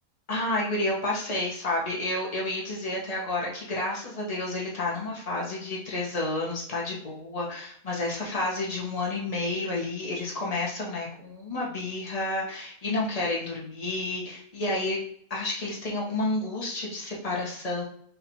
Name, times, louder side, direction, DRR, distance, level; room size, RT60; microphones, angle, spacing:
voice 1, 0.3-15.0 15.3-17.8, left 2 dB, 30° left, -4 dB, 1.2 m, -30 dB
5.3 x 2.8 x 2.8 m, 0.64 s
omnidirectional pair, 1.5 m